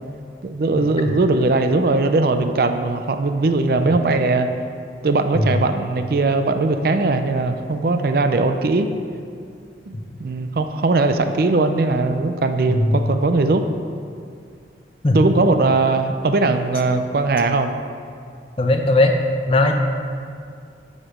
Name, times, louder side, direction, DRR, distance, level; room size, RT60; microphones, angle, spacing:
voice 1, 0.4-4.5 5.0-8.9 9.9-10.0 10.2-13.6 15.1-17.7, right 3 dB, 55° right, 7 dB, 0.4 m, -19 dB
voice 2, 18.6-19.1 19.5-19.7, left 2 dB, 30° left, 4 dB, 0.6 m, -18 dB
7.6 x 6.5 x 5.0 m, 2.3 s
head